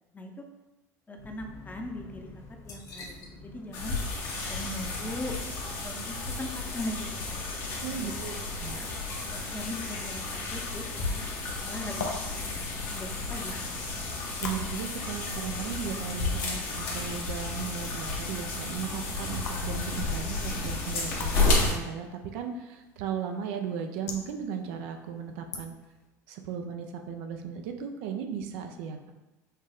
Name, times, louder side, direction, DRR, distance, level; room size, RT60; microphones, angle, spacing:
voice 1, 0.1-0.5 1.1-2.3 2.7-4.0 4.5-5.3 5.8-7.1 7.9-8.1 8.8-9.0 9.3-11.1 11.5-13.8, left 1 dB, 20° left, 3 dB, 0.7 m, -40 dB
sound 1, 1.2-6.3, left 3 dB, 45° left, 1.2 m, -48 dB
sound 2, 3.7-21.7, left 3 dB, 70° left, 1.3 m, -32 dB
voice 2, 7.8-8.3 8.6-8.8 14.4-25.7 26.3-29.1, right 7 dB, 70° right, 5 dB, 0.5 m, -36 dB
sound 3, 11.7-26.1, left 4 dB, 85° left, 0.6 m, -45 dB
5.7 x 2.2 x 3.4 m, 1.0 s
hypercardioid pair, 80°, 9 cm